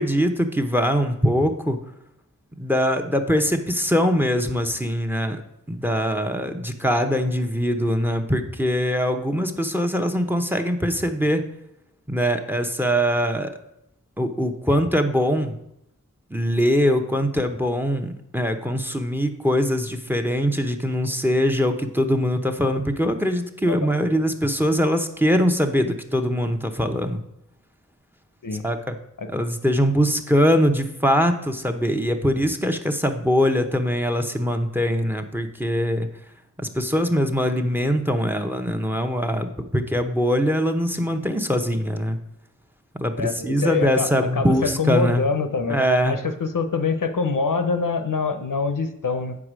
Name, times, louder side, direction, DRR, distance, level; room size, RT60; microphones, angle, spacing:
voice 1, 0.0-1.8 2.6-5.4 5.7-11.4 12.1-13.5 14.2-15.6 16.3-27.2 28.6-29.0 29.3-36.1 36.6-42.2 43.0-45.3 45.7-46.2, equal, 5° right, 7 dB, 0.7 m, -22 dB
voice 2, 43.2-49.4, left 4 dB, 80° left, 8 dB, 0.7 m, -25 dB
8.0 x 4.9 x 6.1 m, 0.80 s
wide cardioid pair, 45°, 32 cm